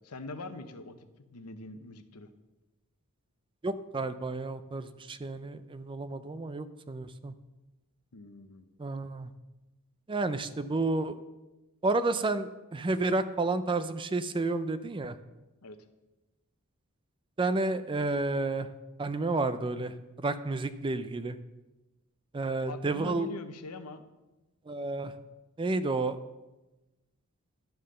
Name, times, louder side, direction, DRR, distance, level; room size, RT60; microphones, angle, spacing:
voice 1, 0.0-2.3 8.1-8.7 15.6-15.8 22.7-24.0, left 3 dB, 80° left, 9 dB, 0.9 m, -43 dB
voice 2, 3.6-7.3 8.8-9.3 10.1-11.2 11.8-15.2 17.4-18.7 19.0-21.4 22.3-23.3 24.7-25.1 25.6-26.2, right 2 dB, 20° right, 12 dB, 0.4 m, -31 dB
11.5 x 5.7 x 6.5 m, 1.1 s
head